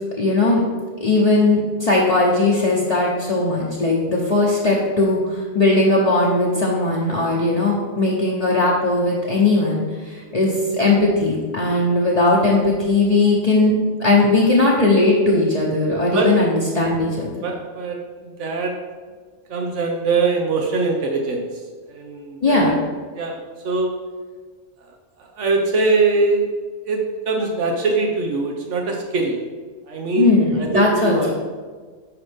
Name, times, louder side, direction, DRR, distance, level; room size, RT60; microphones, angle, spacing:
voice 1, 0.2-0.6 1.0-13.7 14.0-17.3 22.4-22.7 30.2-31.2, left 2 dB, 35° left, -5 dB, 1.0 m, -18 dB
voice 2, 17.4-18.7 19.5-21.6 21.9-22.7 23.1-23.9 25.2-26.5 26.8-29.4 29.9-31.4, right 3 dB, 80° right, 1 dB, 1.2 m, -22 dB
8.9 x 5.4 x 3.6 m, 1.5 s
omnidirectional pair, 1.2 m